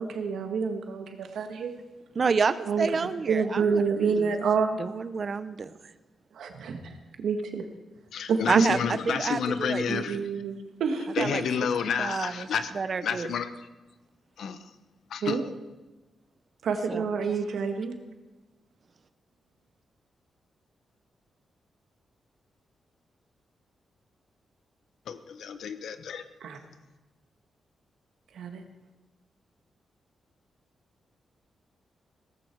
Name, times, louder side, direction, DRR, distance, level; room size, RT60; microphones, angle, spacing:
voice 1, 0.0-1.7 2.7-4.8 6.3-7.7 8.3-8.7 9.1-9.2 9.9-11.3 15.2-15.4 16.6-17.9 26.4-26.6 28.3-28.6, right 5 dB, 90° right, 5 dB, 1.8 m, -28 dB
voice 2, 2.2-3.8 4.2-4.3 4.8-5.7 8.5-9.8 11.2-11.4 12.0-12.5 12.7-13.3 16.9-17.0, right 5 dB, 40° right, 13 dB, 0.7 m, -28 dB
voice 3, 8.1-10.2 11.1-13.7 14.4-14.7 15.1-15.4 25.1-26.2, left 7 dB, 80° left, 11 dB, 1.0 m, -30 dB
17.5 x 14.5 x 4.7 m, 1.1 s
wide cardioid pair, 140°, 0 cm